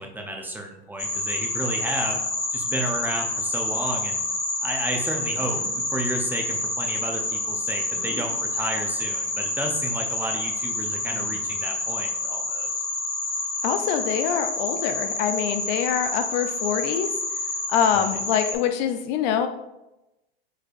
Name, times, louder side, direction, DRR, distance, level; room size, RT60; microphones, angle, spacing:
voice 1, 0.0-2.2 2.5-4.2 4.6-12.8 17.9-18.0, right 1 dB, 5° right, 1 dB, 0.5 m, -32 dB
sound 1, 1.0-18.5, left 2 dB, 35° left, 1.2 m, -28 dB
sound 2, 5.3-5.8 7.9-8.3 9.7-9.8 10.9-11.6, equal, 10° left, 1.6 m, -42 dB
voice 2, 13.6-17.1 17.7-19.5, left 8 dB, 50° left, 8 dB, 0.5 m, -24 dB
4.7 x 4.4 x 2.4 m, 0.93 s
hypercardioid pair, 100°, 31 cm